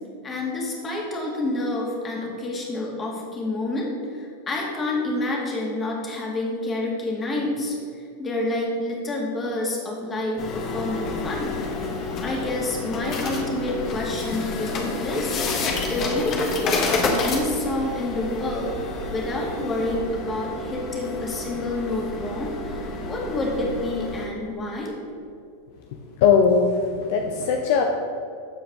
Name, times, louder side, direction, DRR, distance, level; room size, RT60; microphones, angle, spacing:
voice 1, 0.2-7.7 8.2-11.6 12.2-15.4 15.9-25.0, left 2 dB, 25° left, -2 dB, 2.1 m, -28 dB
sound 1, 10.4-24.3, left 3 dB, 40° left, 1.3 m, -29 dB
voice 2, 26.2-27.8, left 6 dB, 60° left, 3 dB, 0.7 m, -19 dB
14.0 x 4.6 x 3.7 m, 2.4 s
hypercardioid pair, 95°, 0 cm